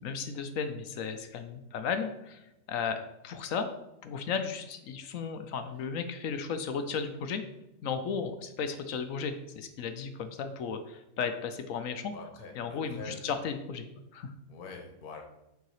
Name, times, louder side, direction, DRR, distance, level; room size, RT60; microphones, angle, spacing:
voice 1, 0.0-3.7 4.0-7.4 7.8-12.1 12.6-13.9 14.1-14.3, left 6 dB, 65° left, 8 dB, 1.0 m, -35 dB
voice 2, 12.1-13.3 14.5-15.2, left 4 dB, 85° left, 3 dB, 1.5 m, -45 dB
6.6 x 4.8 x 4.8 m, 0.90 s
omnidirectional pair, 1.6 m